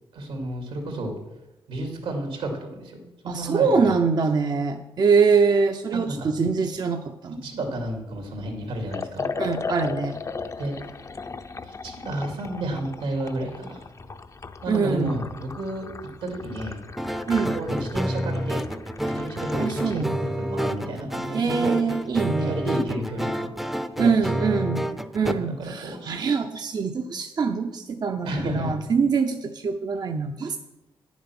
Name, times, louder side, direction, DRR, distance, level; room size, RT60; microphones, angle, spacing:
voice 1, 0.1-1.1 1.7-3.9 6.0-6.3 7.4-9.3 10.6-10.9 11.6-13.8 14.6-15.9 16.2-16.8 17.5-18.7 19.0-21.8 22.5-23.5 24.0-24.5 25.3-26.0 28.2-28.8, right 1 dB, 85° right, 2 dB, 2.6 m, -31 dB
voice 2, 3.3-7.4 9.4-10.2 14.7-15.2 17.3-17.5 19.6-20.3 21.3-22.6 24.0-30.6, right 5 dB, 45° right, 5 dB, 0.7 m, -24 dB
Liquid, 8.9-20.1, left 4 dB, 35° left, 0.7 m, -36 dB
sound 1, 17.0-25.3, equal, ahead, 0.6 m, -29 dB
9.6 x 7.2 x 6.0 m, 0.99 s
cardioid pair, 75°, 9 cm